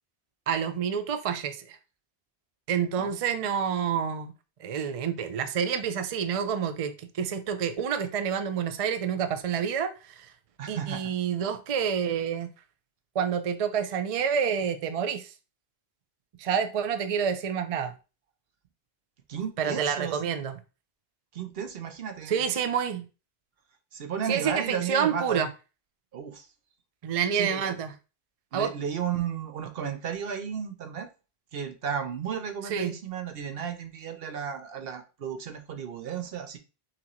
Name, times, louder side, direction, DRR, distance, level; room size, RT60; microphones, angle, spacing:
voice 1, 0.5-1.8 2.7-4.3 4.6-10.3 10.7-12.5 13.1-15.3 16.4-17.9 19.6-20.6 22.3-23.1 24.3-25.5 27.0-27.9 28.5-28.7 32.7-32.9, right 7 dB, 50° right, 0.4 m, -28 dB
voice 2, 10.6-11.1 19.3-20.3 21.3-22.4 23.9-25.4 26.1-26.5 27.3-27.8 28.5-31.1 31.5-36.6, right 8 dB, 70° right, 0.9 m, -34 dB
5.8 x 2.6 x 2.9 m
omnidirectional pair, 1.1 m